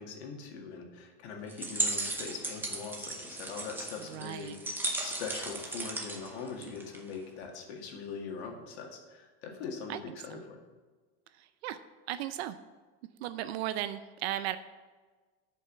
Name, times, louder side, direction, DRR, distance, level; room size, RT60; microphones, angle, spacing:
voice 1, 0.0-10.6, left 5 dB, 85° left, 2 dB, 2.1 m, -42 dB
sound 1, 1.5-7.1, right 2 dB, 5° right, 0.8 m, -36 dB
voice 2, 4.1-4.6 6.6-6.7 9.9-10.0 10.3-10.4 11.4-11.8 12.1-12.6 13.2-14.6, right 12 dB, 75° right, 11 dB, 0.6 m, -36 dB
9.9 x 5.5 x 6.7 m, 1.4 s
supercardioid pair, 165°, 32 cm